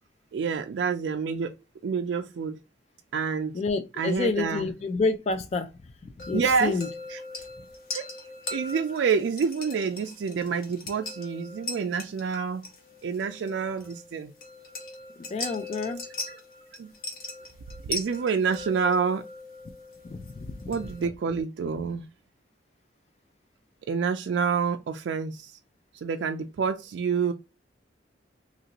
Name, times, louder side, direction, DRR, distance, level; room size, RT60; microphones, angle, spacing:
voice 1, 0.3-1.6 1.8-2.6 3.1-3.6 4.0-4.7 6.3-6.8 7.1-7.2 7.9-8.1 8.5-12.7 13.0-14.3 16.3-16.4 16.8-16.9 17.8-19.2 20.7-22.1 23.9-25.6 25.9-27.3, right 5 dB, 85° right, 0.3 m, -28 dB
voice 2, 3.5-5.7 6.0-6.9 15.2-16.0 20.0-20.7, left 3 dB, 35° left, 0.3 m, -29 dB
sound 1, 6.2-21.1, left 2 dB, 55° left, 1.1 m, -40 dB
3.0 x 2.5 x 2.8 m
head